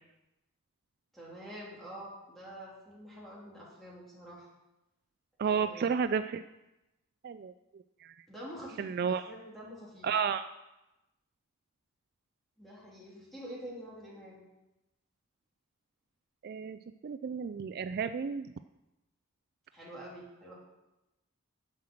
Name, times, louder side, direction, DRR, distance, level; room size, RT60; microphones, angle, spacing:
voice 1, 1.1-4.5 5.5-5.9 8.3-10.1 12.6-14.4 19.7-20.5, equal, ahead, -6 dB, 3.2 m, -47 dB
voice 2, 5.4-6.4 7.2-7.5 8.0-8.1 8.8-9.3 10.0-10.4 16.4-18.5, right 6 dB, 45° right, 11 dB, 0.3 m, -32 dB
9.5 x 7.5 x 6.4 m, 0.98 s
head